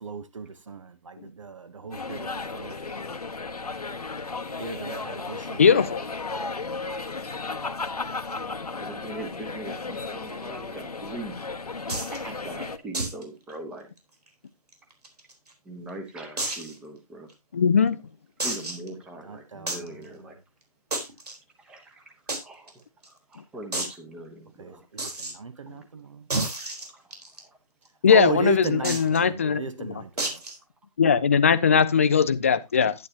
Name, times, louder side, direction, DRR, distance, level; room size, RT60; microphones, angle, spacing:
voice 1, 0.0-3.1 4.6-5.7 6.3-6.4 19.2-20.2 24.6-26.3 28.1-30.4, right 4 dB, 55° right, 0.9 m, -34 dB
sound 1, 1.9-12.8, left 4 dB, 80° left, 1.1 m, -34 dB
voice 2, 5.6-6.0 17.5-18.0 28.0-30.0 31.0-32.9, left 6 dB, 20° left, 0.5 m, -20 dB
voice 3, 8.8-11.4 12.1-13.9 15.7-17.3 18.4-20.4 21.6-22.0 22.4-22.7 23.3-24.8 26.9-27.0, right 1 dB, 5° right, 1.0 m, -40 dB
sound 2, 11.9-12.2 12.9-13.2 13.5-13.6 14.0-14.1 14.7-15.5 16.4-16.7 17.3-17.4 18.4-18.9 19.7-19.9 20.9-21.3 22.3-22.4 22.7-22.8 23.0-23.1 23.7-24.0 25.0-25.3 26.3-27.4 28.8-29.2 30.2-30.6, right 2 dB, 80° right, 3.9 m, -30 dB
10.5 x 9.5 x 2.8 m
figure-of-eight pair, 155°, 20 cm